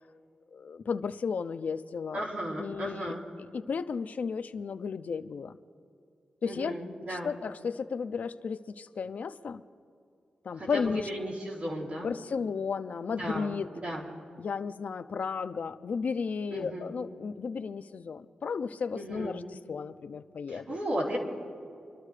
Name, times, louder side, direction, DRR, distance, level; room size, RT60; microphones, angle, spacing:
voice 1, 0.5-2.3 2.6-5.6 6.4-6.8 7.1-9.6 10.4-11.1 12.0-13.7 14.4-19.4 19.7-20.8, left 5 dB, 60° left, 13 dB, 0.5 m, -34 dB
voice 2, 2.1-3.2 6.4-7.3 10.5-12.1 13.2-14.0 16.5-16.9 18.9-19.3 20.5-21.2, equal, 45° right, -6 dB, 3.8 m, -35 dB
25.0 x 12.5 x 3.3 m, 2.5 s
wide cardioid pair, 105°, 3 cm